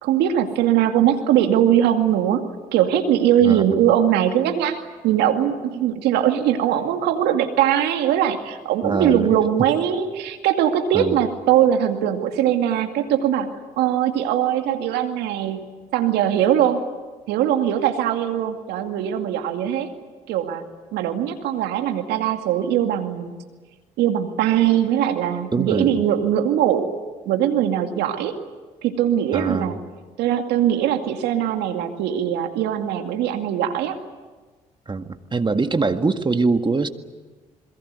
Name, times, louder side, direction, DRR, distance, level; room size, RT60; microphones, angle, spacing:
voice 1, 0.0-2.5 2.7-4.8 5.0-13.5 13.8-16.8 17.3-19.9 20.3-20.6 20.9-23.3 24.0-26.9 27.3-28.3 28.8-29.8 30.2-34.0, right 10 dB, 75° right, 6 dB, 2.3 m, -21 dB
voice 2, 3.4-3.8 8.8-9.3 10.9-11.2 25.5-26.0 29.3-29.8 34.9-36.9, right 4 dB, 25° right, 8 dB, 1.9 m, -23 dB
27.5 x 22.0 x 8.3 m, 1.3 s
hypercardioid pair, 55°, 17 cm